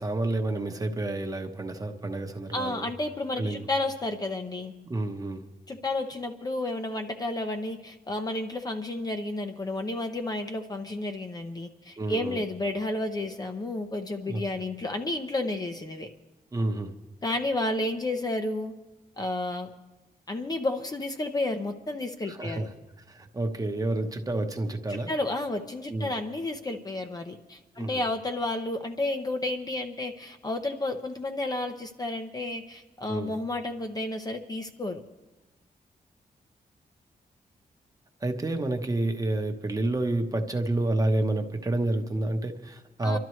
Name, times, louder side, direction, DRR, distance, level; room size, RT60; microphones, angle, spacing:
voice 1, 0.0-2.9 3.4-3.6 4.8-5.4 12.0-12.4 14.2-14.4 16.5-16.9 22.3-22.7 23.1-25.1 25.9-26.1 27.8-28.0 33.1-33.3 38.2-43.2, right 2 dB, 25° right, 5 dB, 1.0 m, -29 dB
voice 2, 2.5-4.7 5.7-16.1 17.2-18.7 19.2-19.7 20.3-22.7 24.9-35.0 43.0-43.2, left 2 dB, 25° left, 5 dB, 0.7 m, -31 dB
27.5 x 12.0 x 3.2 m, 1.1 s
wide cardioid pair, 140°, 15 cm